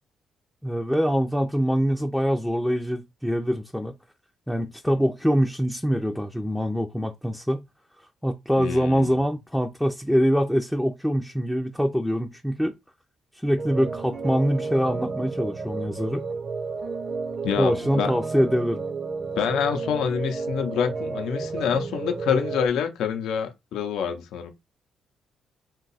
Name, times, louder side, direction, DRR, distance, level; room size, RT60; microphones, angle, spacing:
voice 1, 0.6-3.9 4.5-7.6 8.2-12.7 13.4-16.2 17.6-18.8, equal, ahead, 0.4 m, -24 dB
voice 2, 8.6-9.2 17.4-18.1 19.4-24.5, left 7 dB, 80° left, 0.6 m, -26 dB
sound 1, 13.6-22.7, right 4 dB, 35° right, 0.6 m, -32 dB
2.7 x 2.3 x 4.0 m
cardioid pair, 90°, 0 cm